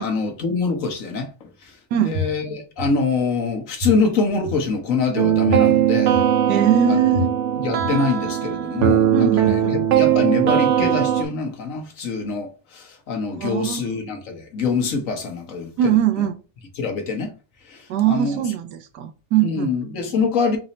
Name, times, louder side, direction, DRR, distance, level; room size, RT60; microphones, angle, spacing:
voice 1, 0.0-6.2 6.9-7.0 7.5-16.2 16.8-17.3 17.6-18.4 19.4-20.6, left 4 dB, 55° left, 1.3 m, -25 dB
voice 2, 1.9-2.2 6.5-7.3 9.1-9.7 13.4-13.9 15.8-16.3 17.9-19.7, right 10 dB, 85° right, 1.2 m, -21 dB
sound 1, 2.1-2.2 2.8-2.9 3.8-3.9 4.4-4.5 5.5-5.6 6.1-6.2 7.1-7.2 7.8-7.9 8.8-8.9 9.4-9.5, right 3 dB, 5° right, 1.0 m, -27 dB
sound 2, 5.2-11.3, right 10 dB, 65° right, 0.7 m, -19 dB
4.1 x 2.6 x 4.1 m
omnidirectional pair, 1.8 m